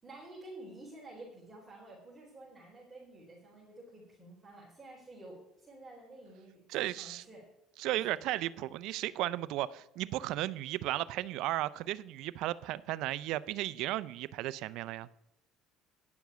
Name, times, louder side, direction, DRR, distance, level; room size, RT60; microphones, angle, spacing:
voice 1, 0.0-7.5 7.9-8.1, right 2 dB, 15° right, -5 dB, 4.1 m, -51 dB
voice 2, 6.7-7.2 7.8-15.1, right 15 dB, 70° right, 17 dB, 0.5 m, -35 dB
10.5 x 7.1 x 6.8 m, 0.84 s
supercardioid pair, 100°, 0 cm